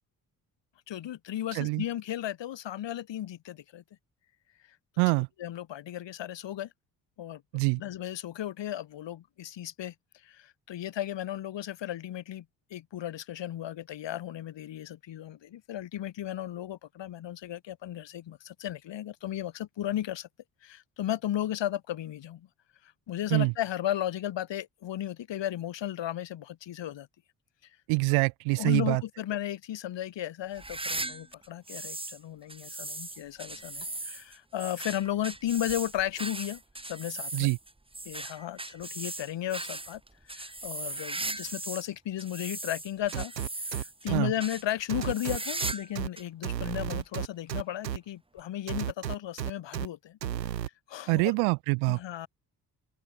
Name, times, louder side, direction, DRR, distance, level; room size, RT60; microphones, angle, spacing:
voice 1, 0.9-3.8 5.4-6.7 7.2-7.4 7.8-9.9 10.2-12.5 12.7-20.3 20.6-22.5 23.1-27.1 28.1-28.2 28.5-37.5 38.1-40.0 40.3-43.3 43.7-50.2 50.9-51.3 51.9-52.3, left 12 dB, 60° left, 5.2 m, -35 dB
voice 2, 1.5-1.8 5.0-5.3 7.5-7.8 23.3-23.5 27.9-29.0 37.3-37.6 44.1-44.3 51.1-52.0, right 35 dB, 70° right, 1.2 m, -25 dB
sound 1, 30.5-32.2 32.5-41.9 42.2-44.1 44.4-44.6 45.0-45.9 46.2-46.3 47.0-47.1 48.4-48.5, right 2 dB, 10° right, 1.8 m, -38 dB
sound 2, 43.1-44.2 44.9-46.1 46.4-48.0 48.7-49.9 50.2-50.7, right 10 dB, 90° right, 2.7 m, -33 dB
open air
figure-of-eight pair, 45°, 49 cm